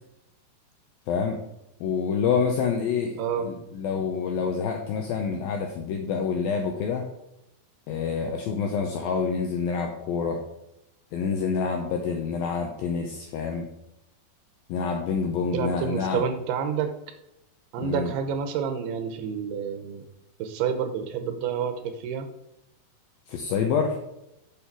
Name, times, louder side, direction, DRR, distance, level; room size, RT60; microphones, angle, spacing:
voice 1, 1.1-1.4 1.8-7.1 7.9-10.4 11.1-13.7 14.7-16.3 17.8-18.1 23.3-24.0, left 6 dB, 85° left, 3 dB, 2.1 m, -27 dB
voice 2, 15.5-16.9 17.7-20.1 20.4-22.3, right 7 dB, 75° right, 7 dB, 2.6 m, -29 dB
8.3 x 6.2 x 4.7 m, 0.86 s
omnidirectional pair, 5.1 m